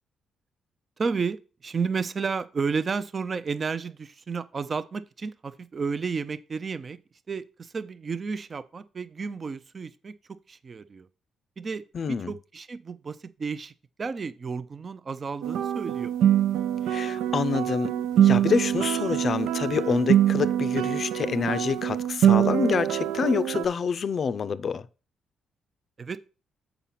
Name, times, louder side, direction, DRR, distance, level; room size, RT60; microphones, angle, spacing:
voice 1, 1.0-7.0 7.3-10.2 10.5-11.1 11.6-13.7 14.0-16.1 26.0-26.2, right 5 dB, 35° right, 0.5 m, -32 dB
voice 2, 11.9-12.3 16.9-24.9, left 6 dB, 45° left, 0.5 m, -27 dB
sound 1, 15.4-23.6, right 10 dB, 90° right, 0.5 m, -24 dB
7.0 x 5.0 x 5.7 m
cardioid pair, 115°, 0 cm